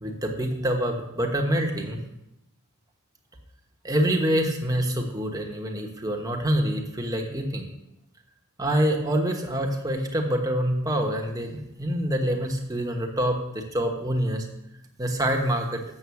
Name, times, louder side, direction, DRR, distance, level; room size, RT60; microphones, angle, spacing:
voice 1, 0.0-2.0 3.8-7.7 8.6-14.5 15.0-15.8, equal, 15° right, 2 dB, 1.2 m, -26 dB
7.5 x 6.3 x 7.1 m, 0.89 s
head